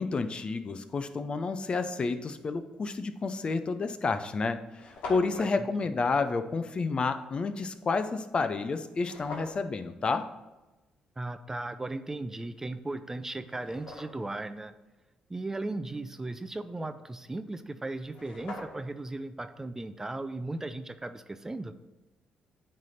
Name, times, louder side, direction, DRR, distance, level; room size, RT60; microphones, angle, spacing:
voice 1, 0.0-4.6 5.1-10.3, left 4 dB, 40° left, 10 dB, 0.6 m, -30 dB
sound 1, 3.2-3.4 4.1-4.2 4.4-4.5 4.7-5.5 9.0-9.6 12.6-12.7 13.2-14.4 17.7-17.8 18.0-19.0, left 2 dB, 70° left, 1.8 m, -43 dB
voice 2, 5.4-6.0 11.2-14.7 15.3-21.7, right 2 dB, 20° right, 11 dB, 0.5 m, -37 dB
9.0 x 3.3 x 5.7 m, 1.1 s
supercardioid pair, 65°, 3 cm